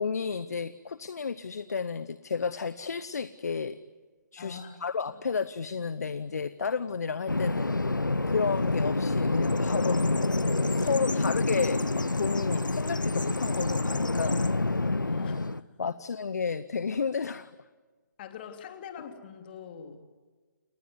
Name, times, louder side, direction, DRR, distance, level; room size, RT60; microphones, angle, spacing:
voice 1, 0.0-3.8 4.3-7.7 8.3-10.0 10.8-14.4 15.8-17.5, left 5 dB, 55° left, 15 dB, 1.0 m, -32 dB
voice 2, 4.4-4.8 5.1-5.2 14.7-15.9 18.2-20.1, left 7 dB, 30° left, 6 dB, 2.9 m, -44 dB
Bird vocalization bird call bird song, 7.3-15.6, left 2 dB, 85° left, 0.9 m, -27 dB
29.5 x 19.0 x 9.7 m, 1.4 s
figure-of-eight pair, 140°, 10 cm